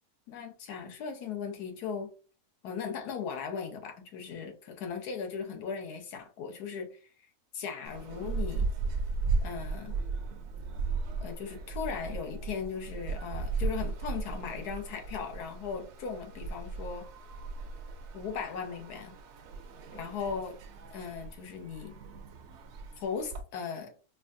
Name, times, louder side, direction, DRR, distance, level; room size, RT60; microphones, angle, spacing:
voice 1, 0.3-2.1 2.6-7.0 7.5-8.7 9.4-9.9 11.2-17.1 18.1-19.2 19.9-20.6 20.9-22.0 23.0-23.9, left 6 dB, 85° left, 1.3 m, -38 dB
sound 1, 7.8-23.4, right 4 dB, 70° right, 0.7 m, -36 dB
4.7 x 2.4 x 2.6 m
omnidirectional pair, 1.6 m